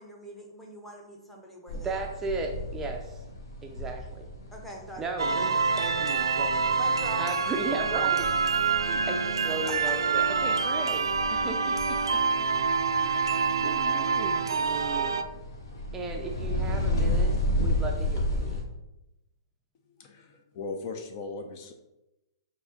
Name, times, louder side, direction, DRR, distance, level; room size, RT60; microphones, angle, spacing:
voice 1, 0.0-2.1 4.5-5.1 6.7-7.2 7.9-8.1 9.6-9.7, equal, 5° left, 0 dB, 0.8 m, -43 dB
sound 1, 1.7-18.6, left 1 dB, 65° left, 0.9 m, -33 dB
voice 2, 1.7-3.2 3.6-4.3 5.0-6.6 7.2-8.3 8.8-12.2 13.0-15.2 15.9-18.6, right 3 dB, 15° right, 2 dB, 0.4 m, -36 dB
sound 2, 5.2-15.2, right 5 dB, 85° right, 0.3 m, -26 dB
voice 3, 19.9-21.7, left 3 dB, 45° left, 5 dB, 0.5 m, -38 dB
6.1 x 2.6 x 2.8 m, 0.95 s
hypercardioid pair, 125°, 2 cm